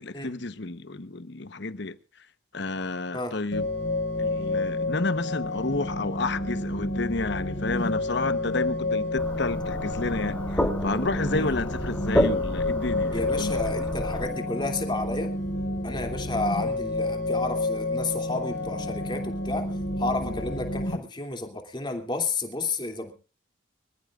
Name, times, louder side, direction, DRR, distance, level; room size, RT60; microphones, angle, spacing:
voice 1, 0.0-2.0 2.5-3.7 4.2-13.6 20.2-20.4, left 3 dB, 60° left, 1.1 m, -30 dB
sound 1, 3.5-21.0, left 2 dB, 80° left, 5.2 m, -30 dB
sound 2, 9.2-14.3, equal, 5° left, 3.1 m, -30 dB
voice 2, 13.1-15.3 15.8-19.7 20.0-23.1, left 3 dB, 25° left, 2.8 m, -31 dB
25.5 x 14.5 x 2.5 m
head